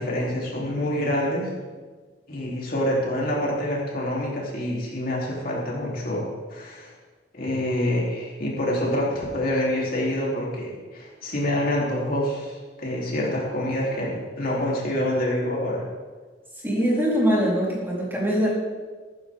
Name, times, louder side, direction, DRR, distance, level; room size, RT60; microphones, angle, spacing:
voice 1, 0.0-1.5 2.3-6.9 7.3-15.9, left 1 dB, 55° left, -4 dB, 3.4 m, -26 dB
voice 2, 16.6-18.5, equal, 15° right, -6 dB, 3.9 m, -22 dB
14.5 x 14.5 x 3.7 m, 1.4 s
head